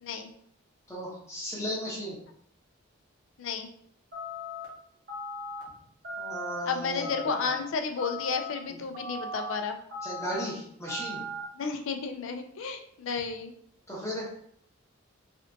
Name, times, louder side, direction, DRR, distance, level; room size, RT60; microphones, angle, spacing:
voice 1, 0.9-2.2 6.2-7.3 8.7-8.8 10.0-11.2 13.9-14.3, equal, 15° left, -5 dB, 0.8 m, -35 dB
sound 1, 4.1-4.7 5.1-5.6 6.0-6.6 7.0-7.5 8.0-8.5 8.9-9.5 9.9-10.4 10.9-11.4, left 1 dB, 40° right, 0.8 m, -38 dB
voice 2, 6.6-9.8 11.6-13.5, left 5 dB, 60° left, 6 dB, 0.3 m, -32 dB
3.4 x 2.5 x 2.5 m, 0.66 s
head